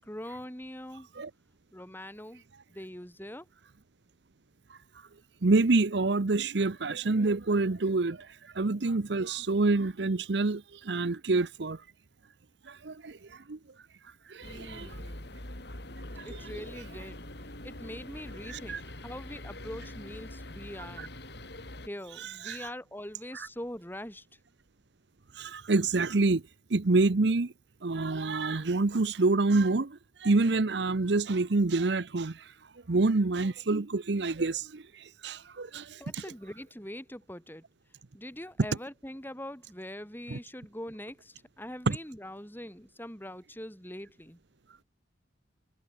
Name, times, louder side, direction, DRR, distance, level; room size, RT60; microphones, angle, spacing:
voice 1, 0.0-1.1 1.7-2.4 2.7-3.5 14.4-15.4 16.2-17.3 17.6-21.1 21.9-24.3 36.0-37.6 38.1-44.4, left 1 dB, 10° left, 7.2 m, -43 dB
voice 2, 4.7-5.1 5.4-11.8 12.7-13.6 14.0-15.0 16.2-16.5 18.5-18.8 21.0-21.1 22.2-22.7 23.3-23.5 25.3-26.4 26.7-27.5 27.8-32.5 32.9-36.2 40.3-40.4 41.9-42.0, right 3 dB, 65° right, 0.8 m, -27 dB
sound 1, 14.4-21.9, left 1 dB, 60° left, 5.3 m, -44 dB
head